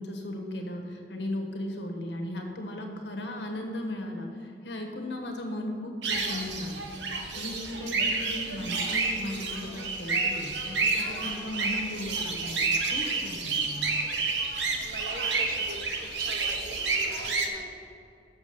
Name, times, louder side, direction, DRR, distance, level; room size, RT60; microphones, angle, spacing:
voice 1, 0.0-13.8, left 1 dB, 75° left, 2 dB, 1.3 m, -36 dB
sound 1, 6.0-17.5, right 4 dB, 80° right, 1.0 m, -30 dB
voice 2, 14.7-15.9 16.2-16.8 17.2-17.7, right 2 dB, 50° right, 4 dB, 0.8 m, -42 dB
7.3 x 6.3 x 6.8 m, 2.5 s
head